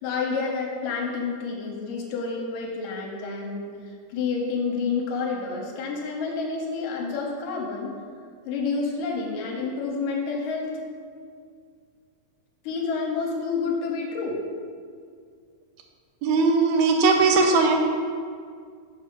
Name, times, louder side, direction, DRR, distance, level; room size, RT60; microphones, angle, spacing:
voice 1, 0.0-7.9 8.5-10.7 12.6-14.4, left 4 dB, 75° left, 0 dB, 2.3 m, -29 dB
voice 2, 16.2-17.8, right 4 dB, 85° right, 3 dB, 2.7 m, -19 dB
6.6 x 4.7 x 6.6 m, 2.1 s
omnidirectional pair, 4.2 m